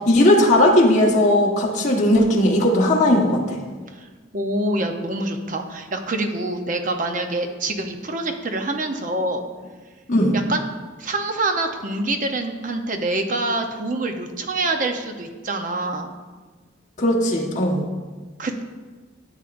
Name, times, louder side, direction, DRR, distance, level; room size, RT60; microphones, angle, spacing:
voice 1, 0.0-3.6 10.1-10.4 17.0-17.8, left 1 dB, 40° left, -2 dB, 1.3 m, -17 dB
voice 2, 4.3-9.4 10.3-10.6 11.0-16.1 18.4-18.7, right 2 dB, 40° right, 5 dB, 0.7 m, -26 dB
12.5 x 8.1 x 2.6 m, 1.4 s
head